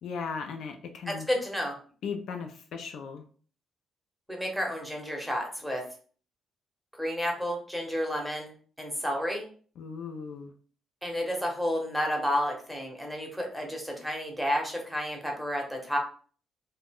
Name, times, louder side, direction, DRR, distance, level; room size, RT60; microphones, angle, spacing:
voice 1, 0.0-1.3 2.0-3.2 9.8-10.5, left 5 dB, 70° left, 4 dB, 0.4 m, -37 dB
voice 2, 1.1-1.8 4.3-5.8 6.9-8.5 8.8-9.5 11.0-16.0, equal, ahead, 0 dB, 0.8 m, -31 dB
2.3 x 2.1 x 3.4 m, 0.43 s
cardioid pair, 110°, 0 cm